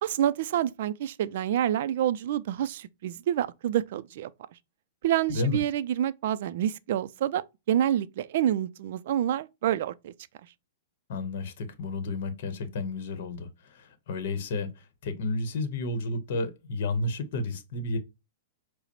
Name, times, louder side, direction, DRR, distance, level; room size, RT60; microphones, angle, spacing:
voice 1, 0.0-4.3 5.0-10.1, right 11 dB, 60° right, 0.3 m, -28 dB
voice 2, 5.3-5.6 11.1-18.0, left 2 dB, 60° left, 1.0 m, -31 dB
4.8 x 2.0 x 2.9 m
hypercardioid pair, 140°, 0 cm